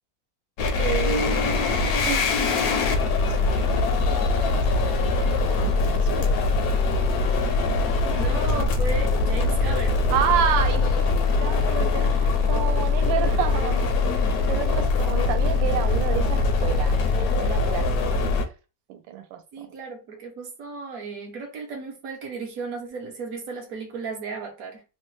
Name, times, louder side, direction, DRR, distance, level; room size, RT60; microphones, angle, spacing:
sound 1, 0.6-18.4, left 3 dB, 75° left, 0.9 m, -22 dB
voice 1, 0.8-2.3 3.3-6.4 10.1-18.2 18.9-19.7, right 10 dB, 80° right, 1.3 m, -30 dB
voice 2, 8.0-10.2 19.5-24.8, right 4 dB, 65° right, 0.9 m, -35 dB
3.1 x 2.2 x 3.0 m
omnidirectional pair, 2.1 m